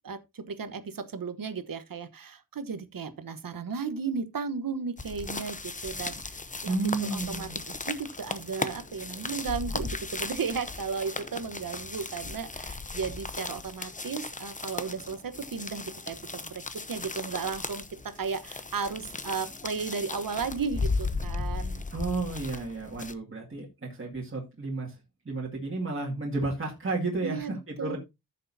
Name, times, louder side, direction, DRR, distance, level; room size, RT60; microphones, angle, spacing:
voice 1, 0.0-6.4 6.6-16.2 16.5-21.8 27.2-28.0, right 5 dB, 60° right, 1.2 m, -35 dB
sound 1, 5.0-23.1, left 3 dB, 20° left, 0.7 m, -36 dB
voice 2, 6.7-7.6 21.9-25.0 25.3-28.0, right 3 dB, 35° right, 2.1 m, -32 dB
14.5 x 6.6 x 2.7 m
wide cardioid pair, 160°, 38 cm